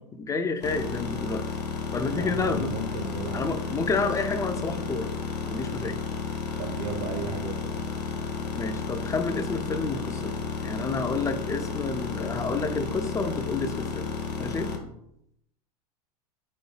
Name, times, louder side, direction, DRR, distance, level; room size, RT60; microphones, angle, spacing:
voice 1, 0.2-1.4 1.9-2.7 3.3-5.1 5.4-6.0 8.5-10.3 10.6-14.1 14.4-14.7, left 3 dB, 15° left, 7 dB, 0.5 m, -29 dB
sound 1, 0.6-14.8, left 5 dB, 80° left, 0.9 m, -32 dB
voice 2, 2.2-3.5 6.6-7.9, right 3 dB, 65° right, 2 dB, 1.2 m, -34 dB
4.3 x 2.3 x 4.7 m, 0.76 s
hypercardioid pair, 90°, 21 cm